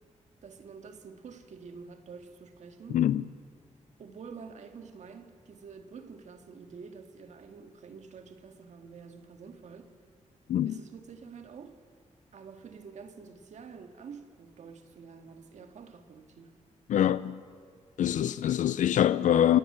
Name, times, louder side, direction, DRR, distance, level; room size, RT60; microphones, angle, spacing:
voice 1, 0.4-3.0 4.0-9.9 10.7-11.8 12.3-16.5, right 5 dB, 70° right, 1.9 m, -48 dB
voice 2, 2.9-3.2 10.5-10.8 16.9-17.4 18.0-19.6, left 10 dB, 85° left, 0.5 m, -24 dB
27.5 x 17.0 x 7.9 m
wide cardioid pair, 145°, 13 cm